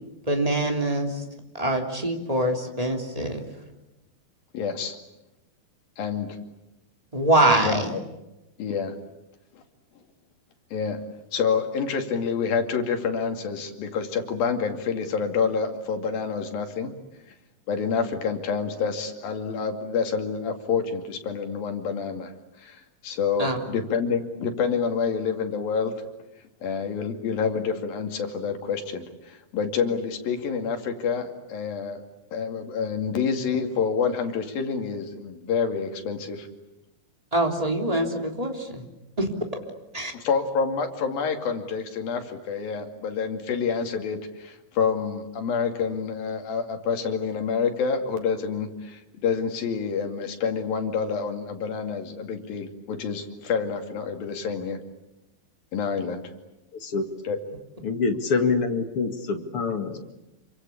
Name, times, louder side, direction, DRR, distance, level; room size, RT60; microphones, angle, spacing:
voice 1, 0.2-1.2 1.5-3.4 7.1-7.9 23.4-23.6 37.3-38.8 39.2-39.3 39.9-40.1, right 1 dB, 10° right, 3 dB, 2.9 m, -24 dB
voice 2, 4.5-5.0 6.0-6.3 7.6-8.0 8.6-9.0 10.7-11.0 11.3-16.9 17.7-22.3 22.6-25.9 26.6-32.0 32.3-36.5 40.1-54.8 55.7-56.2 57.2-57.4, left 6 dB, 70° left, 5 dB, 4.2 m, -28 dB
voice 3, 57.8-60.1, left 4 dB, 45° left, 6 dB, 2.5 m, -25 dB
28.0 x 25.0 x 8.6 m, 0.96 s
omnidirectional pair, 4.3 m